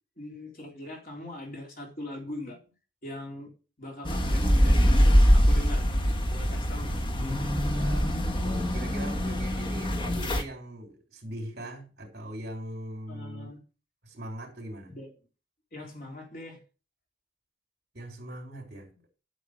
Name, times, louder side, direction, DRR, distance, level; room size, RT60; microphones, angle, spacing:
voice 1, 0.2-2.6 3.0-3.5 3.8-7.0 13.1-13.6 14.9-15.1 15.7-16.6, left 1 dB, 50° left, 3.6 m, -41 dB
sound 1, 4.0-10.4, equal, 25° left, 1.2 m, -23 dB
voice 2, 7.7-13.5 14.0-15.0 17.9-18.9, right 1 dB, 60° right, 3.7 m, -41 dB
11.0 x 7.0 x 4.9 m
head